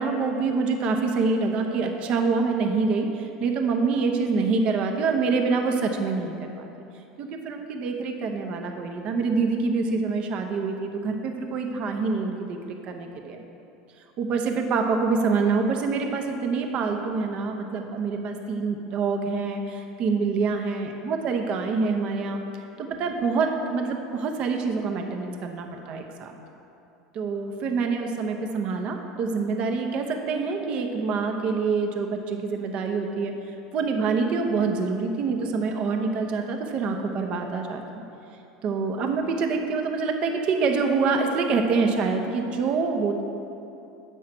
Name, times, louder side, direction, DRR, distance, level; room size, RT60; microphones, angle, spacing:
voice 1, 0.0-6.7 7.2-13.4 14.2-22.4 22.8-26.3 27.1-33.3 33.7-38.0 38.6-43.2, right 4 dB, 50° right, 4 dB, 0.9 m, -26 dB
7.6 x 5.5 x 6.0 m, 2.8 s
hypercardioid pair, 85°, 2 cm